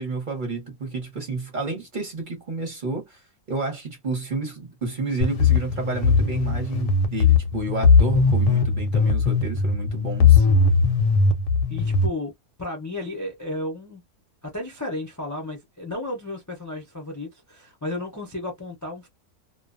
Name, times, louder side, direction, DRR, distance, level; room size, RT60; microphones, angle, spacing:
voice 1, 0.0-3.2 3.5-10.4, right 3 dB, 40° right, 0.8 m, -30 dB
sound 1, 5.2-12.1, left 5 dB, 70° left, 0.9 m, -19 dB
voice 2, 11.7-12.3 12.6-14.0 14.4-19.1, left 2 dB, 25° left, 0.3 m, -33 dB
2.4 x 2.2 x 2.4 m
omnidirectional pair, 1.6 m